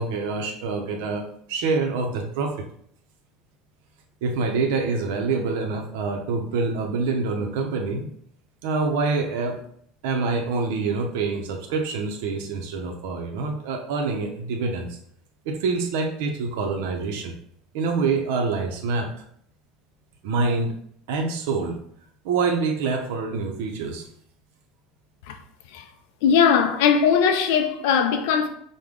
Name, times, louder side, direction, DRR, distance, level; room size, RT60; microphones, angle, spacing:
voice 1, 0.0-2.6 4.2-8.1 8.6-9.6 10.0-15.0 15.4-17.3 17.7-19.1 20.2-20.8 21.1-21.8 22.2-24.1, right 4 dB, 75° right, 0.6 m, -26 dB
voice 2, 26.2-28.5, left 7 dB, 70° left, 0.4 m, -19 dB
5.0 x 2.2 x 3.6 m
cardioid pair, 175°, 0 cm